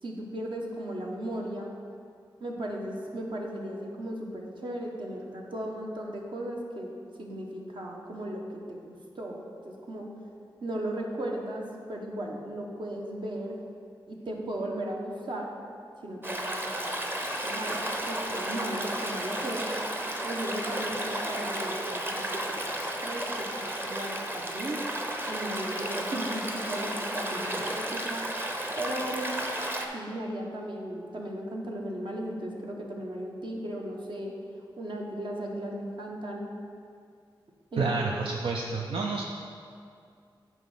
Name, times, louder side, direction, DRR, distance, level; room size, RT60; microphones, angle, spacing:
voice 1, 0.0-1.7 2.4-6.9 7.2-10.1 10.6-13.6 14.1-15.5 16.0-16.9 17.4-17.8 18.1-19.8 20.2-22.7 23.0-24.8 25.2-28.2 28.8-29.4 29.9-34.3 34.8-36.5 37.7-38.1, right 1 dB, 65° right, -1 dB, 1.1 m, -36 dB
Stream, 16.2-29.9, right 1 dB, 25° right, 0.8 m, -33 dB
voice 2, 37.8-39.2, right 4 dB, 80° right, -1 dB, 0.5 m, -29 dB
9.0 x 3.2 x 5.7 m, 2.3 s
cardioid pair, 50°, 9 cm